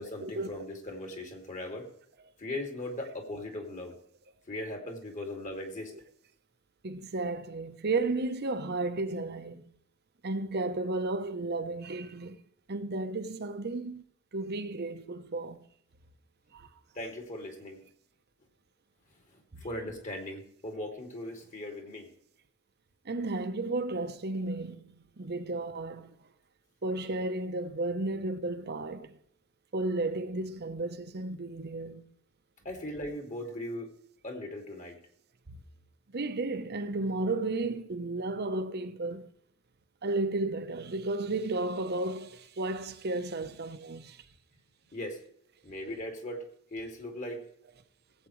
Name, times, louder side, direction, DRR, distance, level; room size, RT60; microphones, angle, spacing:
voice 1, 0.0-1.9 2.4-3.9 4.5-5.9 16.9-17.8 19.3-22.1 32.6-33.9 34.2-35.0 43.4-43.5 44.9-45.2 45.6-46.4 46.7-47.4, left 1 dB, 40° left, 2.5 m, -39 dB
voice 2, 6.8-9.7 10.2-12.4 12.7-14.0 14.3-15.6 16.5-16.7 19.5-19.6 23.0-26.2 26.8-29.2 29.7-32.1 36.1-39.3 40.0-44.2, right 2 dB, 50° right, 0.9 m, -33 dB
18.0 x 8.3 x 3.2 m
head